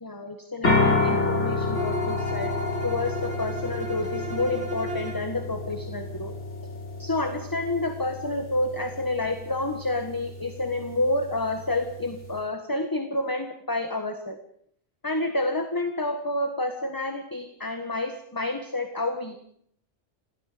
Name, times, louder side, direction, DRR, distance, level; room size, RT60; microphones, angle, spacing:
voice 1, 0.0-2.5 2.8-6.3 7.0-14.4 15.0-19.4, left 2 dB, 15° left, 6 dB, 1.6 m, -29 dB
sound 1, 0.6-12.4, left 3 dB, 75° left, 3.5 m, -30 dB
Bowed string instrument, 1.7-5.3, equal, 65° right, 4.4 m, -35 dB
28.0 x 19.5 x 5.2 m, 0.66 s
omnidirectional pair, 1.2 m